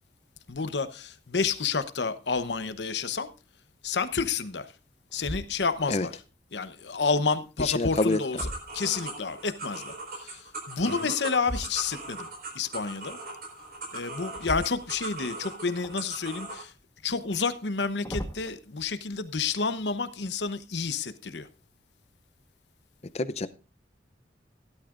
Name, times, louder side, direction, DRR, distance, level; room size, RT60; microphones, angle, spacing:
voice 1, 0.5-3.3 3.8-4.7 5.1-6.1 6.5-8.4 8.7-12.3 12.5-13.2 13.9-16.7 17.0-21.5, left 4 dB, 75° left, 0.9 m, -30 dB
sound 1, 3.3-3.4 4.0-4.5 5.1-6.0 7.6-9.3 11.4-12.2 14.3-15.4 15.8-16.6 17.6-18.5, equal, 20° left, 1.3 m, -40 dB
voice 2, 7.6-8.2 23.1-23.5, left 3 dB, 35° left, 0.6 m, -26 dB
sound 2, 8.0-16.6, right 2 dB, 55° right, 4.6 m, -39 dB
16.5 x 12.0 x 2.5 m
head